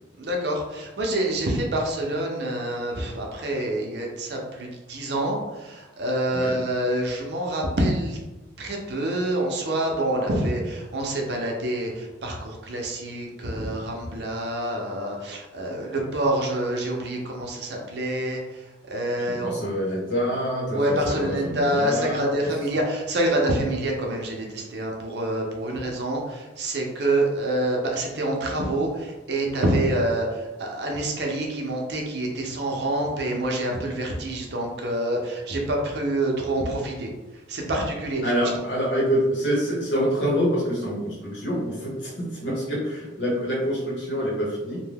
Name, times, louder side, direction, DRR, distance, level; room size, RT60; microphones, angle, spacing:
voice 1, 0.2-8.2 8.6-18.6 18.9-19.6 20.7-37.1 37.5-38.5, right 1 dB, 65° right, 0 dB, 0.6 m, -27 dB
voice 2, 19.2-22.5 38.2-44.8, equal, 80° left, -3 dB, 1.0 m, -26 dB
2.6 x 2.2 x 3.3 m, 1.1 s
head